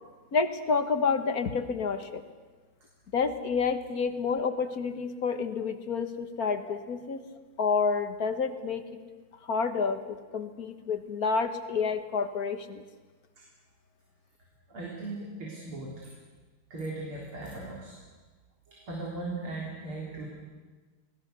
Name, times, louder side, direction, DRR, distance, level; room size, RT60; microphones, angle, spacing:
voice 1, 0.3-2.2 3.1-7.2 7.6-8.8 9.5-12.8, left 5 dB, 50° left, 8 dB, 1.7 m, -29 dB
voice 2, 14.7-16.1 16.7-17.9 18.7-20.3, right 2 dB, 75° right, -3 dB, 4.7 m, -38 dB
30.0 x 19.5 x 6.9 m, 1.4 s
omnidirectional pair, 2.4 m